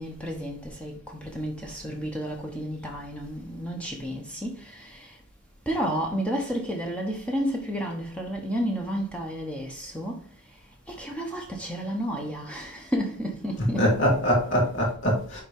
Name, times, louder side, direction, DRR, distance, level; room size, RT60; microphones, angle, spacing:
voice 1, 0.0-5.2 5.7-10.6 10.9-14.0, equal, 5° left, 1.0 m, -31 dB
voice 2, 13.5-15.4, equal, 55° left, 2.8 m, -23 dB
9.9 x 3.7 x 3.6 m
head